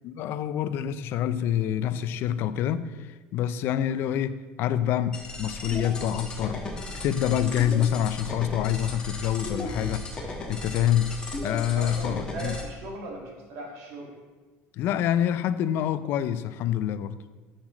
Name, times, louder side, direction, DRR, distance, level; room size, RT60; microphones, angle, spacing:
voice 1, 0.0-6.6 7.0-10.0 10.5-11.2 11.4-12.6 14.7-17.2, left 10 dB, 45° left, 13 dB, 0.4 m, -26 dB
sound 1, 5.1-12.6, left 2 dB, 15° left, 1.1 m, -35 dB
voice 2, 11.7-14.2, right 2 dB, 60° right, 0 dB, 2.0 m, -38 dB
7.2 x 6.6 x 6.2 m, 1.3 s
cardioid pair, 180°, 5 cm